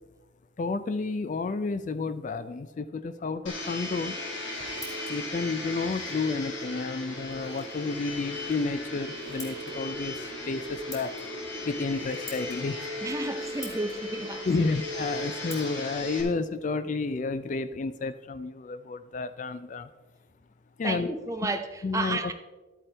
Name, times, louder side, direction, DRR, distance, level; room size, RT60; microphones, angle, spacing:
voice 1, 0.6-4.1 5.1-11.1 11.7-12.9 14.4-19.9 20.8-21.1 21.8-22.3, left 3 dB, 40° left, 0.3 m, -31 dB
Domestic sounds home sounds, 3.5-16.2, left 1 dB, 70° left, 2.4 m, -36 dB
Scissors, 4.2-17.8, left 2 dB, 15° left, 1.4 m, -51 dB
voice 2, 13.0-14.7 20.8-22.3, right 2 dB, 15° right, 0.6 m, -32 dB
12.5 x 8.5 x 3.3 m
head